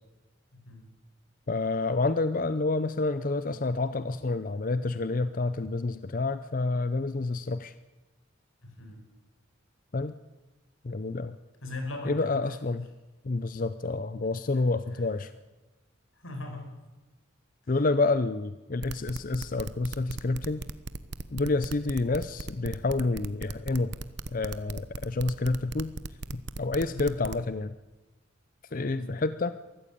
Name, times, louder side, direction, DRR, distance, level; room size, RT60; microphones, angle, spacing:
voice 1, 0.5-0.9 8.6-9.0 11.6-12.6 14.5-14.6 14.9-15.1 16.1-16.7 17.6-17.9 26.8-27.1 28.7-29.1, left 2 dB, 85° left, 4 dB, 5.2 m, -40 dB
voice 2, 1.5-7.7 9.9-10.2 10.8-11.4 12.1-12.9 13.2-15.3 17.7-20.6 21.3-23.9 24.3-25.9 26.3-27.7 28.7-29.5, left 3 dB, 40° left, 13 dB, 0.6 m, -28 dB
sound 1, 18.8-27.4, right 3 dB, 55° right, 1.0 m, -37 dB
22.5 x 14.0 x 8.5 m, 1.1 s
head